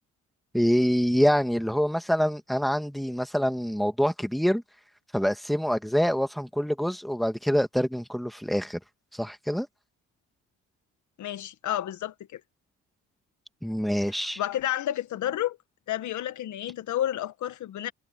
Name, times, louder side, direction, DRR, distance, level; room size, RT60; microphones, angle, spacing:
voice 1, 0.5-4.6 5.1-8.8 9.1-9.7 13.6-14.4, equal, ahead, 1.8 m, -25 dB
voice 2, 11.2-12.4 14.4-15.6 15.9-17.9, left 12 dB, 75° left, 1.6 m, -30 dB
cardioid pair, 90°, 30 cm